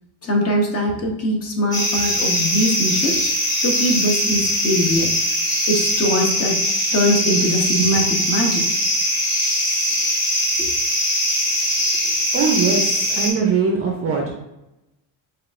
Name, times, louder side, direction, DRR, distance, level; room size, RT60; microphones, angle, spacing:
voice 1, 0.2-3.3 3.6-5.1 5.7-6.6 6.9-8.7 10.6-10.7, equal, 30° left, 0 dB, 0.8 m, -21 dB
sound 1, 1.7-13.3, equal, 10° left, 1.1 m, -21 dB
voice 2, 12.0-14.3, right 5 dB, 30° right, 1 dB, 0.5 m, -21 dB
6.0 x 2.5 x 2.4 m, 0.91 s
cardioid pair, 150°, 46 cm